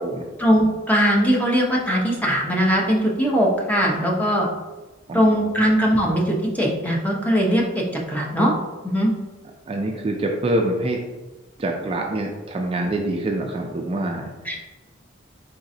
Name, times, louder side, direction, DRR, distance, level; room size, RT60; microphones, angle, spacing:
voice 1, 0.4-4.5 5.1-7.8 8.1-8.5 8.8-9.1 14.5-14.6, equal, 10° left, -2 dB, 0.7 m, -20 dB
voice 2, 5.1-5.7 9.7-11.0 11.6-14.3, right 1 dB, 30° right, 1 dB, 0.3 m, -25 dB
4.0 x 3.8 x 2.7 m, 1.2 s
head